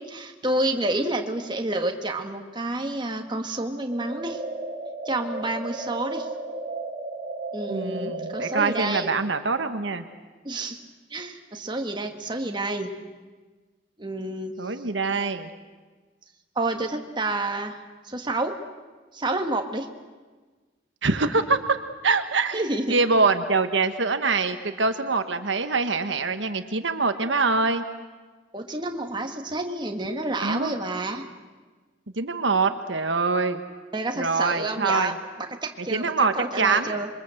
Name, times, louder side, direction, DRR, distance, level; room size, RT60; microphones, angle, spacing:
voice 1, 0.1-4.4 5.1-6.3 7.5-9.1 10.4-10.8 11.1-12.9 14.0-14.5 16.6-17.8 18.0-18.6 19.1-19.9 22.5-23.0 28.5-31.3 33.9-35.1 35.5-36.1 36.3-37.1, right 2 dB, 25° right, 4 dB, 1.8 m, -29 dB
sound 1, 3.9-8.9, right 2 dB, 45° right, 3.5 m, -34 dB
voice 2, 7.7-10.0 14.6-15.5 21.0-21.8 22.0-22.6 22.9-27.8 30.4-30.8 32.2-33.6 34.2-35.1 35.9-37.0, right 4 dB, 70° right, 8 dB, 1.3 m, -24 dB
27.0 x 23.5 x 7.8 m, 1.3 s
head